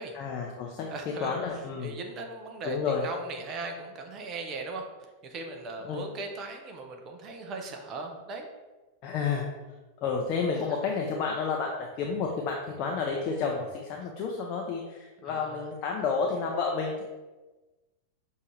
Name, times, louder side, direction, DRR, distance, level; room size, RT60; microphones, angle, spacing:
voice 1, 0.1-0.9 1.2-2.0 2.6-3.1 5.8-6.0 9.0-9.4 10.0-11.7 12.0-17.0, left 5 dB, 40° left, 0 dB, 0.5 m, -30 dB
voice 2, 0.9-4.8 5.2-8.5 15.2-15.7, right 3 dB, 30° right, 3 dB, 0.7 m, -38 dB
6.2 x 2.7 x 3.2 m, 1.2 s
figure-of-eight pair, 90°, 0 cm